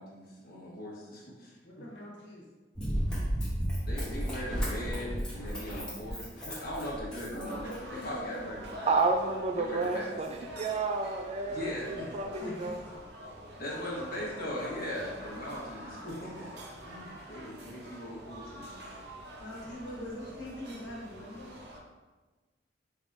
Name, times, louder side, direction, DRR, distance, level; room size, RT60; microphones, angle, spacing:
voice 1, 0.0-1.9 3.8-8.9 9.5-10.1 11.5-12.1 13.6-16.5 16.8-18.9, equal, 55° left, -5 dB, 1.2 m, -39 dB
voice 2, 1.6-2.4 7.3-8.6 12.4-12.7 19.4-21.6, equal, 75° left, -4 dB, 1.4 m, -42 dB
Run, 2.8-8.0 8.6-8.7, equal, 5° left, 1.0 m, -34 dB
sound 1, 7.5-21.8, equal, 65° right, 0.6 m, -46 dB
voice 3, 8.9-12.8, right 3 dB, 35° right, 5 dB, 0.3 m, -30 dB
4.8 x 3.5 x 2.6 m, 1.3 s
head